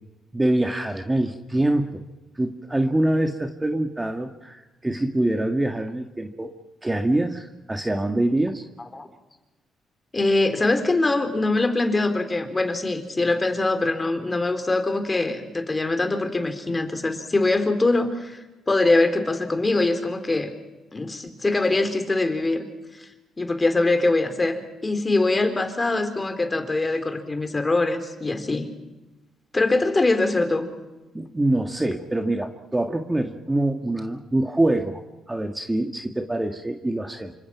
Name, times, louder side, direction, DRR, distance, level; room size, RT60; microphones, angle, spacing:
voice 1, 0.3-2.0 2.4-6.5 6.8-8.6 31.1-37.3, right 1 dB, 15° right, 5 dB, 1.7 m, -25 dB
voice 2, 10.1-20.5 20.9-22.7 22.9-23.1 23.4-28.7 29.5-30.7, left 2 dB, 20° left, 7 dB, 3.8 m, -23 dB
28.0 x 25.5 x 5.9 m, 1.1 s
cardioid pair, 90°, 0 cm